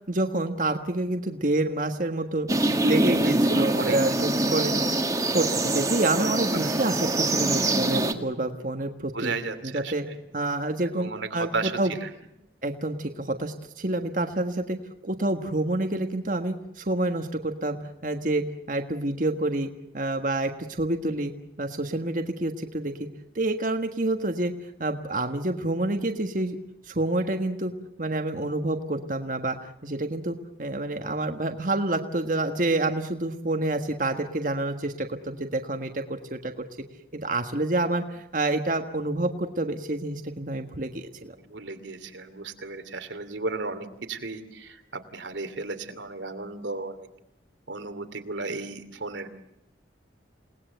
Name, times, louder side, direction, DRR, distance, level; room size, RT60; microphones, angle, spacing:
voice 1, 0.0-2.5 2.8-9.3 9.6-10.0 10.3-11.9 12.6-14.8 15.0-19.7 19.9-21.3 21.6-23.1 23.3-26.6 26.8-27.7 28.0-36.6 37.1-41.3, right 2 dB, 45° right, 5 dB, 1.5 m, -28 dB
sound 1, 2.5-8.1, right 2 dB, 20° right, 1.8 m, -24 dB
voice 2, 3.2-4.0 6.2-6.3 6.6-6.7 9.1-9.9 10.9-12.1 41.5-47.1 47.7-49.3, right 3 dB, 90° right, 8 dB, 2.7 m, -34 dB
29.0 x 19.5 x 8.0 m, 0.84 s
head